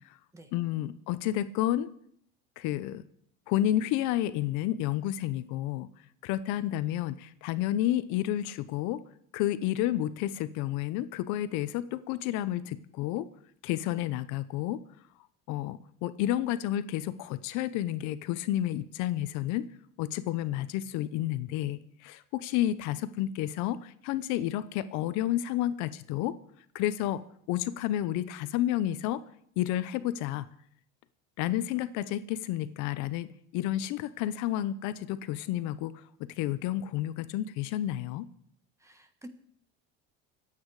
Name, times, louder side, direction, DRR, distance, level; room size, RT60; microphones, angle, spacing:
voice 1, 0.5-1.9 2.6-3.0 3.5-5.9 6.2-9.0 9.3-13.3 13.6-14.8 15.5-19.7 20.0-26.4 26.7-27.2 27.5-29.2 29.6-30.5 31.4-35.9 36.4-38.3, left 13 dB, 70° left, 13 dB, 0.9 m, -30 dB
voice 2, 38.8-39.3, right 1 dB, 10° right, 9 dB, 1.4 m, -49 dB
26.0 x 8.7 x 4.9 m, 0.66 s
cardioid pair, 155°, 31 cm